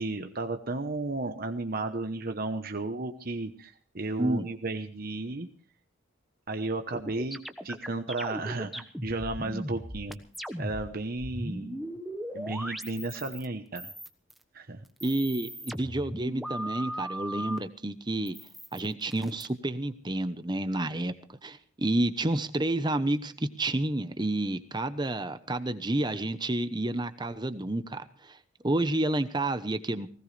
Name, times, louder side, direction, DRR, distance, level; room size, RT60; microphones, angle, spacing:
voice 1, 0.0-5.5 6.5-7.4 7.6-10.2 10.6-11.8 12.3-13.9 14.5-14.8, right 2 dB, 50° right, 6 dB, 1.0 m, -33 dB
sound 1, 6.9-13.5 13.8-14.4 14.9-17.6 18.3-19.5, equal, ahead, 1.2 m, -38 dB
voice 2, 15.0-18.4 18.7-21.1 21.4-28.4 28.6-30.1, right 1 dB, 20° right, 11 dB, 0.9 m, -30 dB
19.5 x 17.5 x 3.3 m, 0.43 s
head